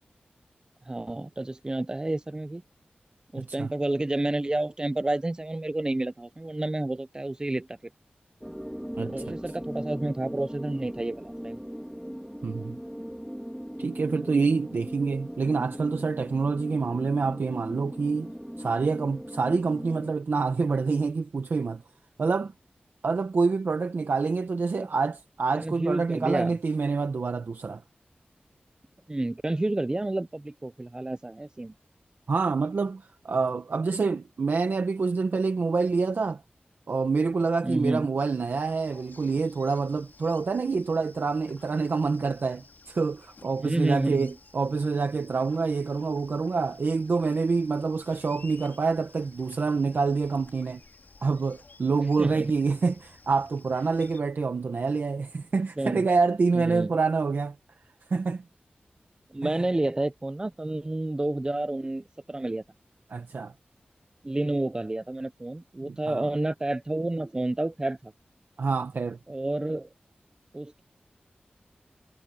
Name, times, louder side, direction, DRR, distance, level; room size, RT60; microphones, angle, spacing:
voice 1, 0.9-2.6 3.3-7.8 9.1-11.6 24.8-24.9 25.5-26.6 29.1-31.8 37.6-38.1 43.6-44.3 52.2-52.5 55.8-56.1 56.5-56.9 59.3-62.6 64.2-68.1 69.3-69.9 70.5-70.8, right 2 dB, 25° right, 0.9 m, -30 dB
voice 2, 3.4-3.7 9.0-9.2 12.4-12.8 13.8-18.3 18.6-21.8 22.2-22.5 23.0-27.8 32.3-36.4 36.9-50.8 51.2-57.5 58.1-58.4 59.4-59.5 63.1-63.5 65.8-66.3 68.6-69.2, right 4 dB, 75° right, 1.3 m, -27 dB
sound 1, 8.4-20.1, equal, 5° right, 3.8 m, -38 dB
sound 2, 38.5-54.2, left 4 dB, 65° left, 5.1 m, -54 dB
wide cardioid pair, 100°, 3 cm